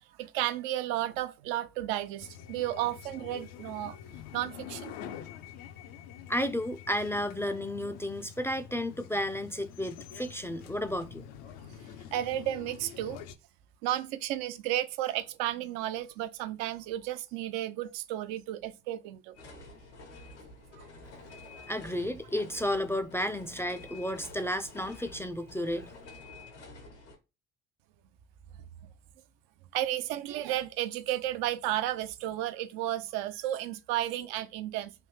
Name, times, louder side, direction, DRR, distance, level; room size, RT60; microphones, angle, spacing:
voice 1, 0.2-4.0 4.3-4.9 12.1-13.2 13.8-19.3 20.8-20.9 21.6-21.7 29.7-34.9, right 13 dB, 70° right, 0.5 m, -33 dB
sound 1, 2.2-13.3, left 9 dB, 70° left, 0.6 m, -46 dB
voice 2, 6.3-11.2 21.7-25.9, left 1 dB, 5° left, 0.4 m, -32 dB
sound 2, 19.3-27.1, left 2 dB, 85° left, 1.3 m, -49 dB
3.4 x 2.6 x 3.2 m
hypercardioid pair, 60°, 35 cm